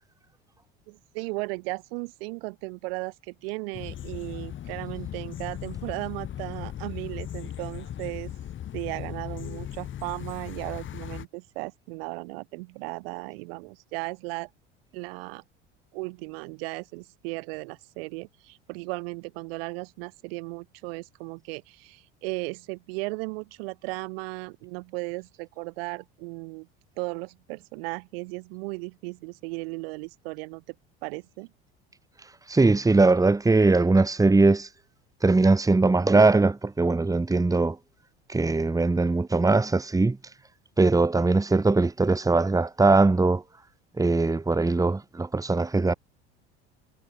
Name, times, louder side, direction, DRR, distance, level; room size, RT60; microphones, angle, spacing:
voice 1, 0.9-8.3 8.7-14.5 14.9-15.4 15.9-26.7 27.0-30.6 31.0-31.5, right 27 dB, 70° right, 4.0 m, -36 dB
sound 1, 3.7-11.3, left 10 dB, 40° left, 1.4 m, -37 dB
voice 2, 32.5-34.7 35.2-37.8 38.3-40.2 40.8-43.4 44.0-45.9, right 3 dB, 10° right, 1.5 m, -21 dB
hypercardioid pair, 75°, 30 cm